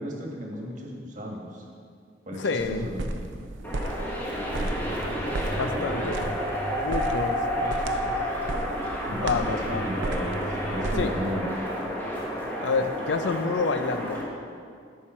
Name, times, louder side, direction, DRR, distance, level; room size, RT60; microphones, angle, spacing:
voice 1, 0.0-1.6 2.3-3.1 5.7-6.3 9.1-10.4 10.7-11.5, equal, 40° right, -1 dB, 1.5 m, -35 dB
voice 2, 2.4-2.9 5.6-6.3 6.7-8.2 9.1-9.8 11.0-11.1 12.6-14.2, left 4 dB, 75° left, 9 dB, 0.5 m, -29 dB
sound 1, 2.6-11.2, right 2 dB, 90° right, 0.6 m, -35 dB
sound 2, 3.6-14.2, equal, 10° left, 1.3 m, -30 dB
13.0 x 5.7 x 4.4 m, 2.2 s
head